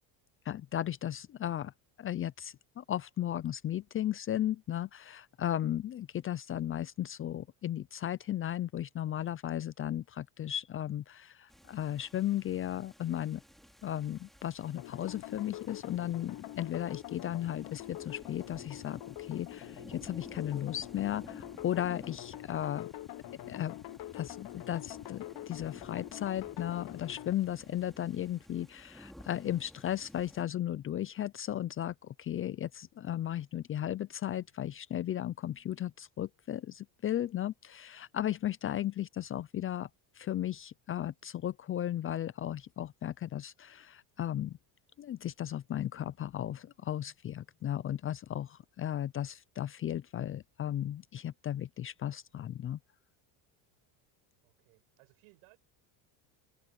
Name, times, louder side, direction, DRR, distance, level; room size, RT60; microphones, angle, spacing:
voice 1, 0.5-1.7 2.0-13.4 13.8-22.9 23.5-23.7 24.1-39.9 40.2-44.6 45.0-52.8, left 11 dB, 30° left, 0.4 m, -35 dB
sound 1, 11.5-30.4, equal, ahead, 3.3 m, -55 dB
sound 2, 14.8-27.3, left 15 dB, 50° left, 1.1 m, -45 dB
voice 2, 54.4-55.6, right 32 dB, 85° right, 8.0 m, -63 dB
cardioid pair, 125°, 47 cm